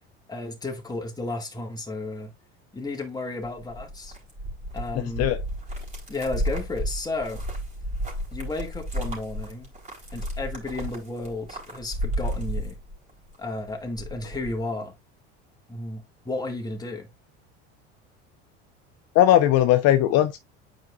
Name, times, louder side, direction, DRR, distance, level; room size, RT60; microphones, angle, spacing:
voice 1, 0.3-2.3 2.7-4.2 4.7-5.3 6.1-7.4 8.3-9.7 10.1-12.8 13.4-14.9 15.7-17.1, left 2 dB, 10° left, 2.1 m, -33 dB
sound 1, 3.4-13.4 13.7-14.6, equal, 20° right, 3.7 m, -32 dB
voice 2, 4.9-5.4 19.1-20.4, left 12 dB, 55° left, 0.7 m, -19 dB
9.0 x 5.0 x 2.5 m
supercardioid pair, 95°, 31 cm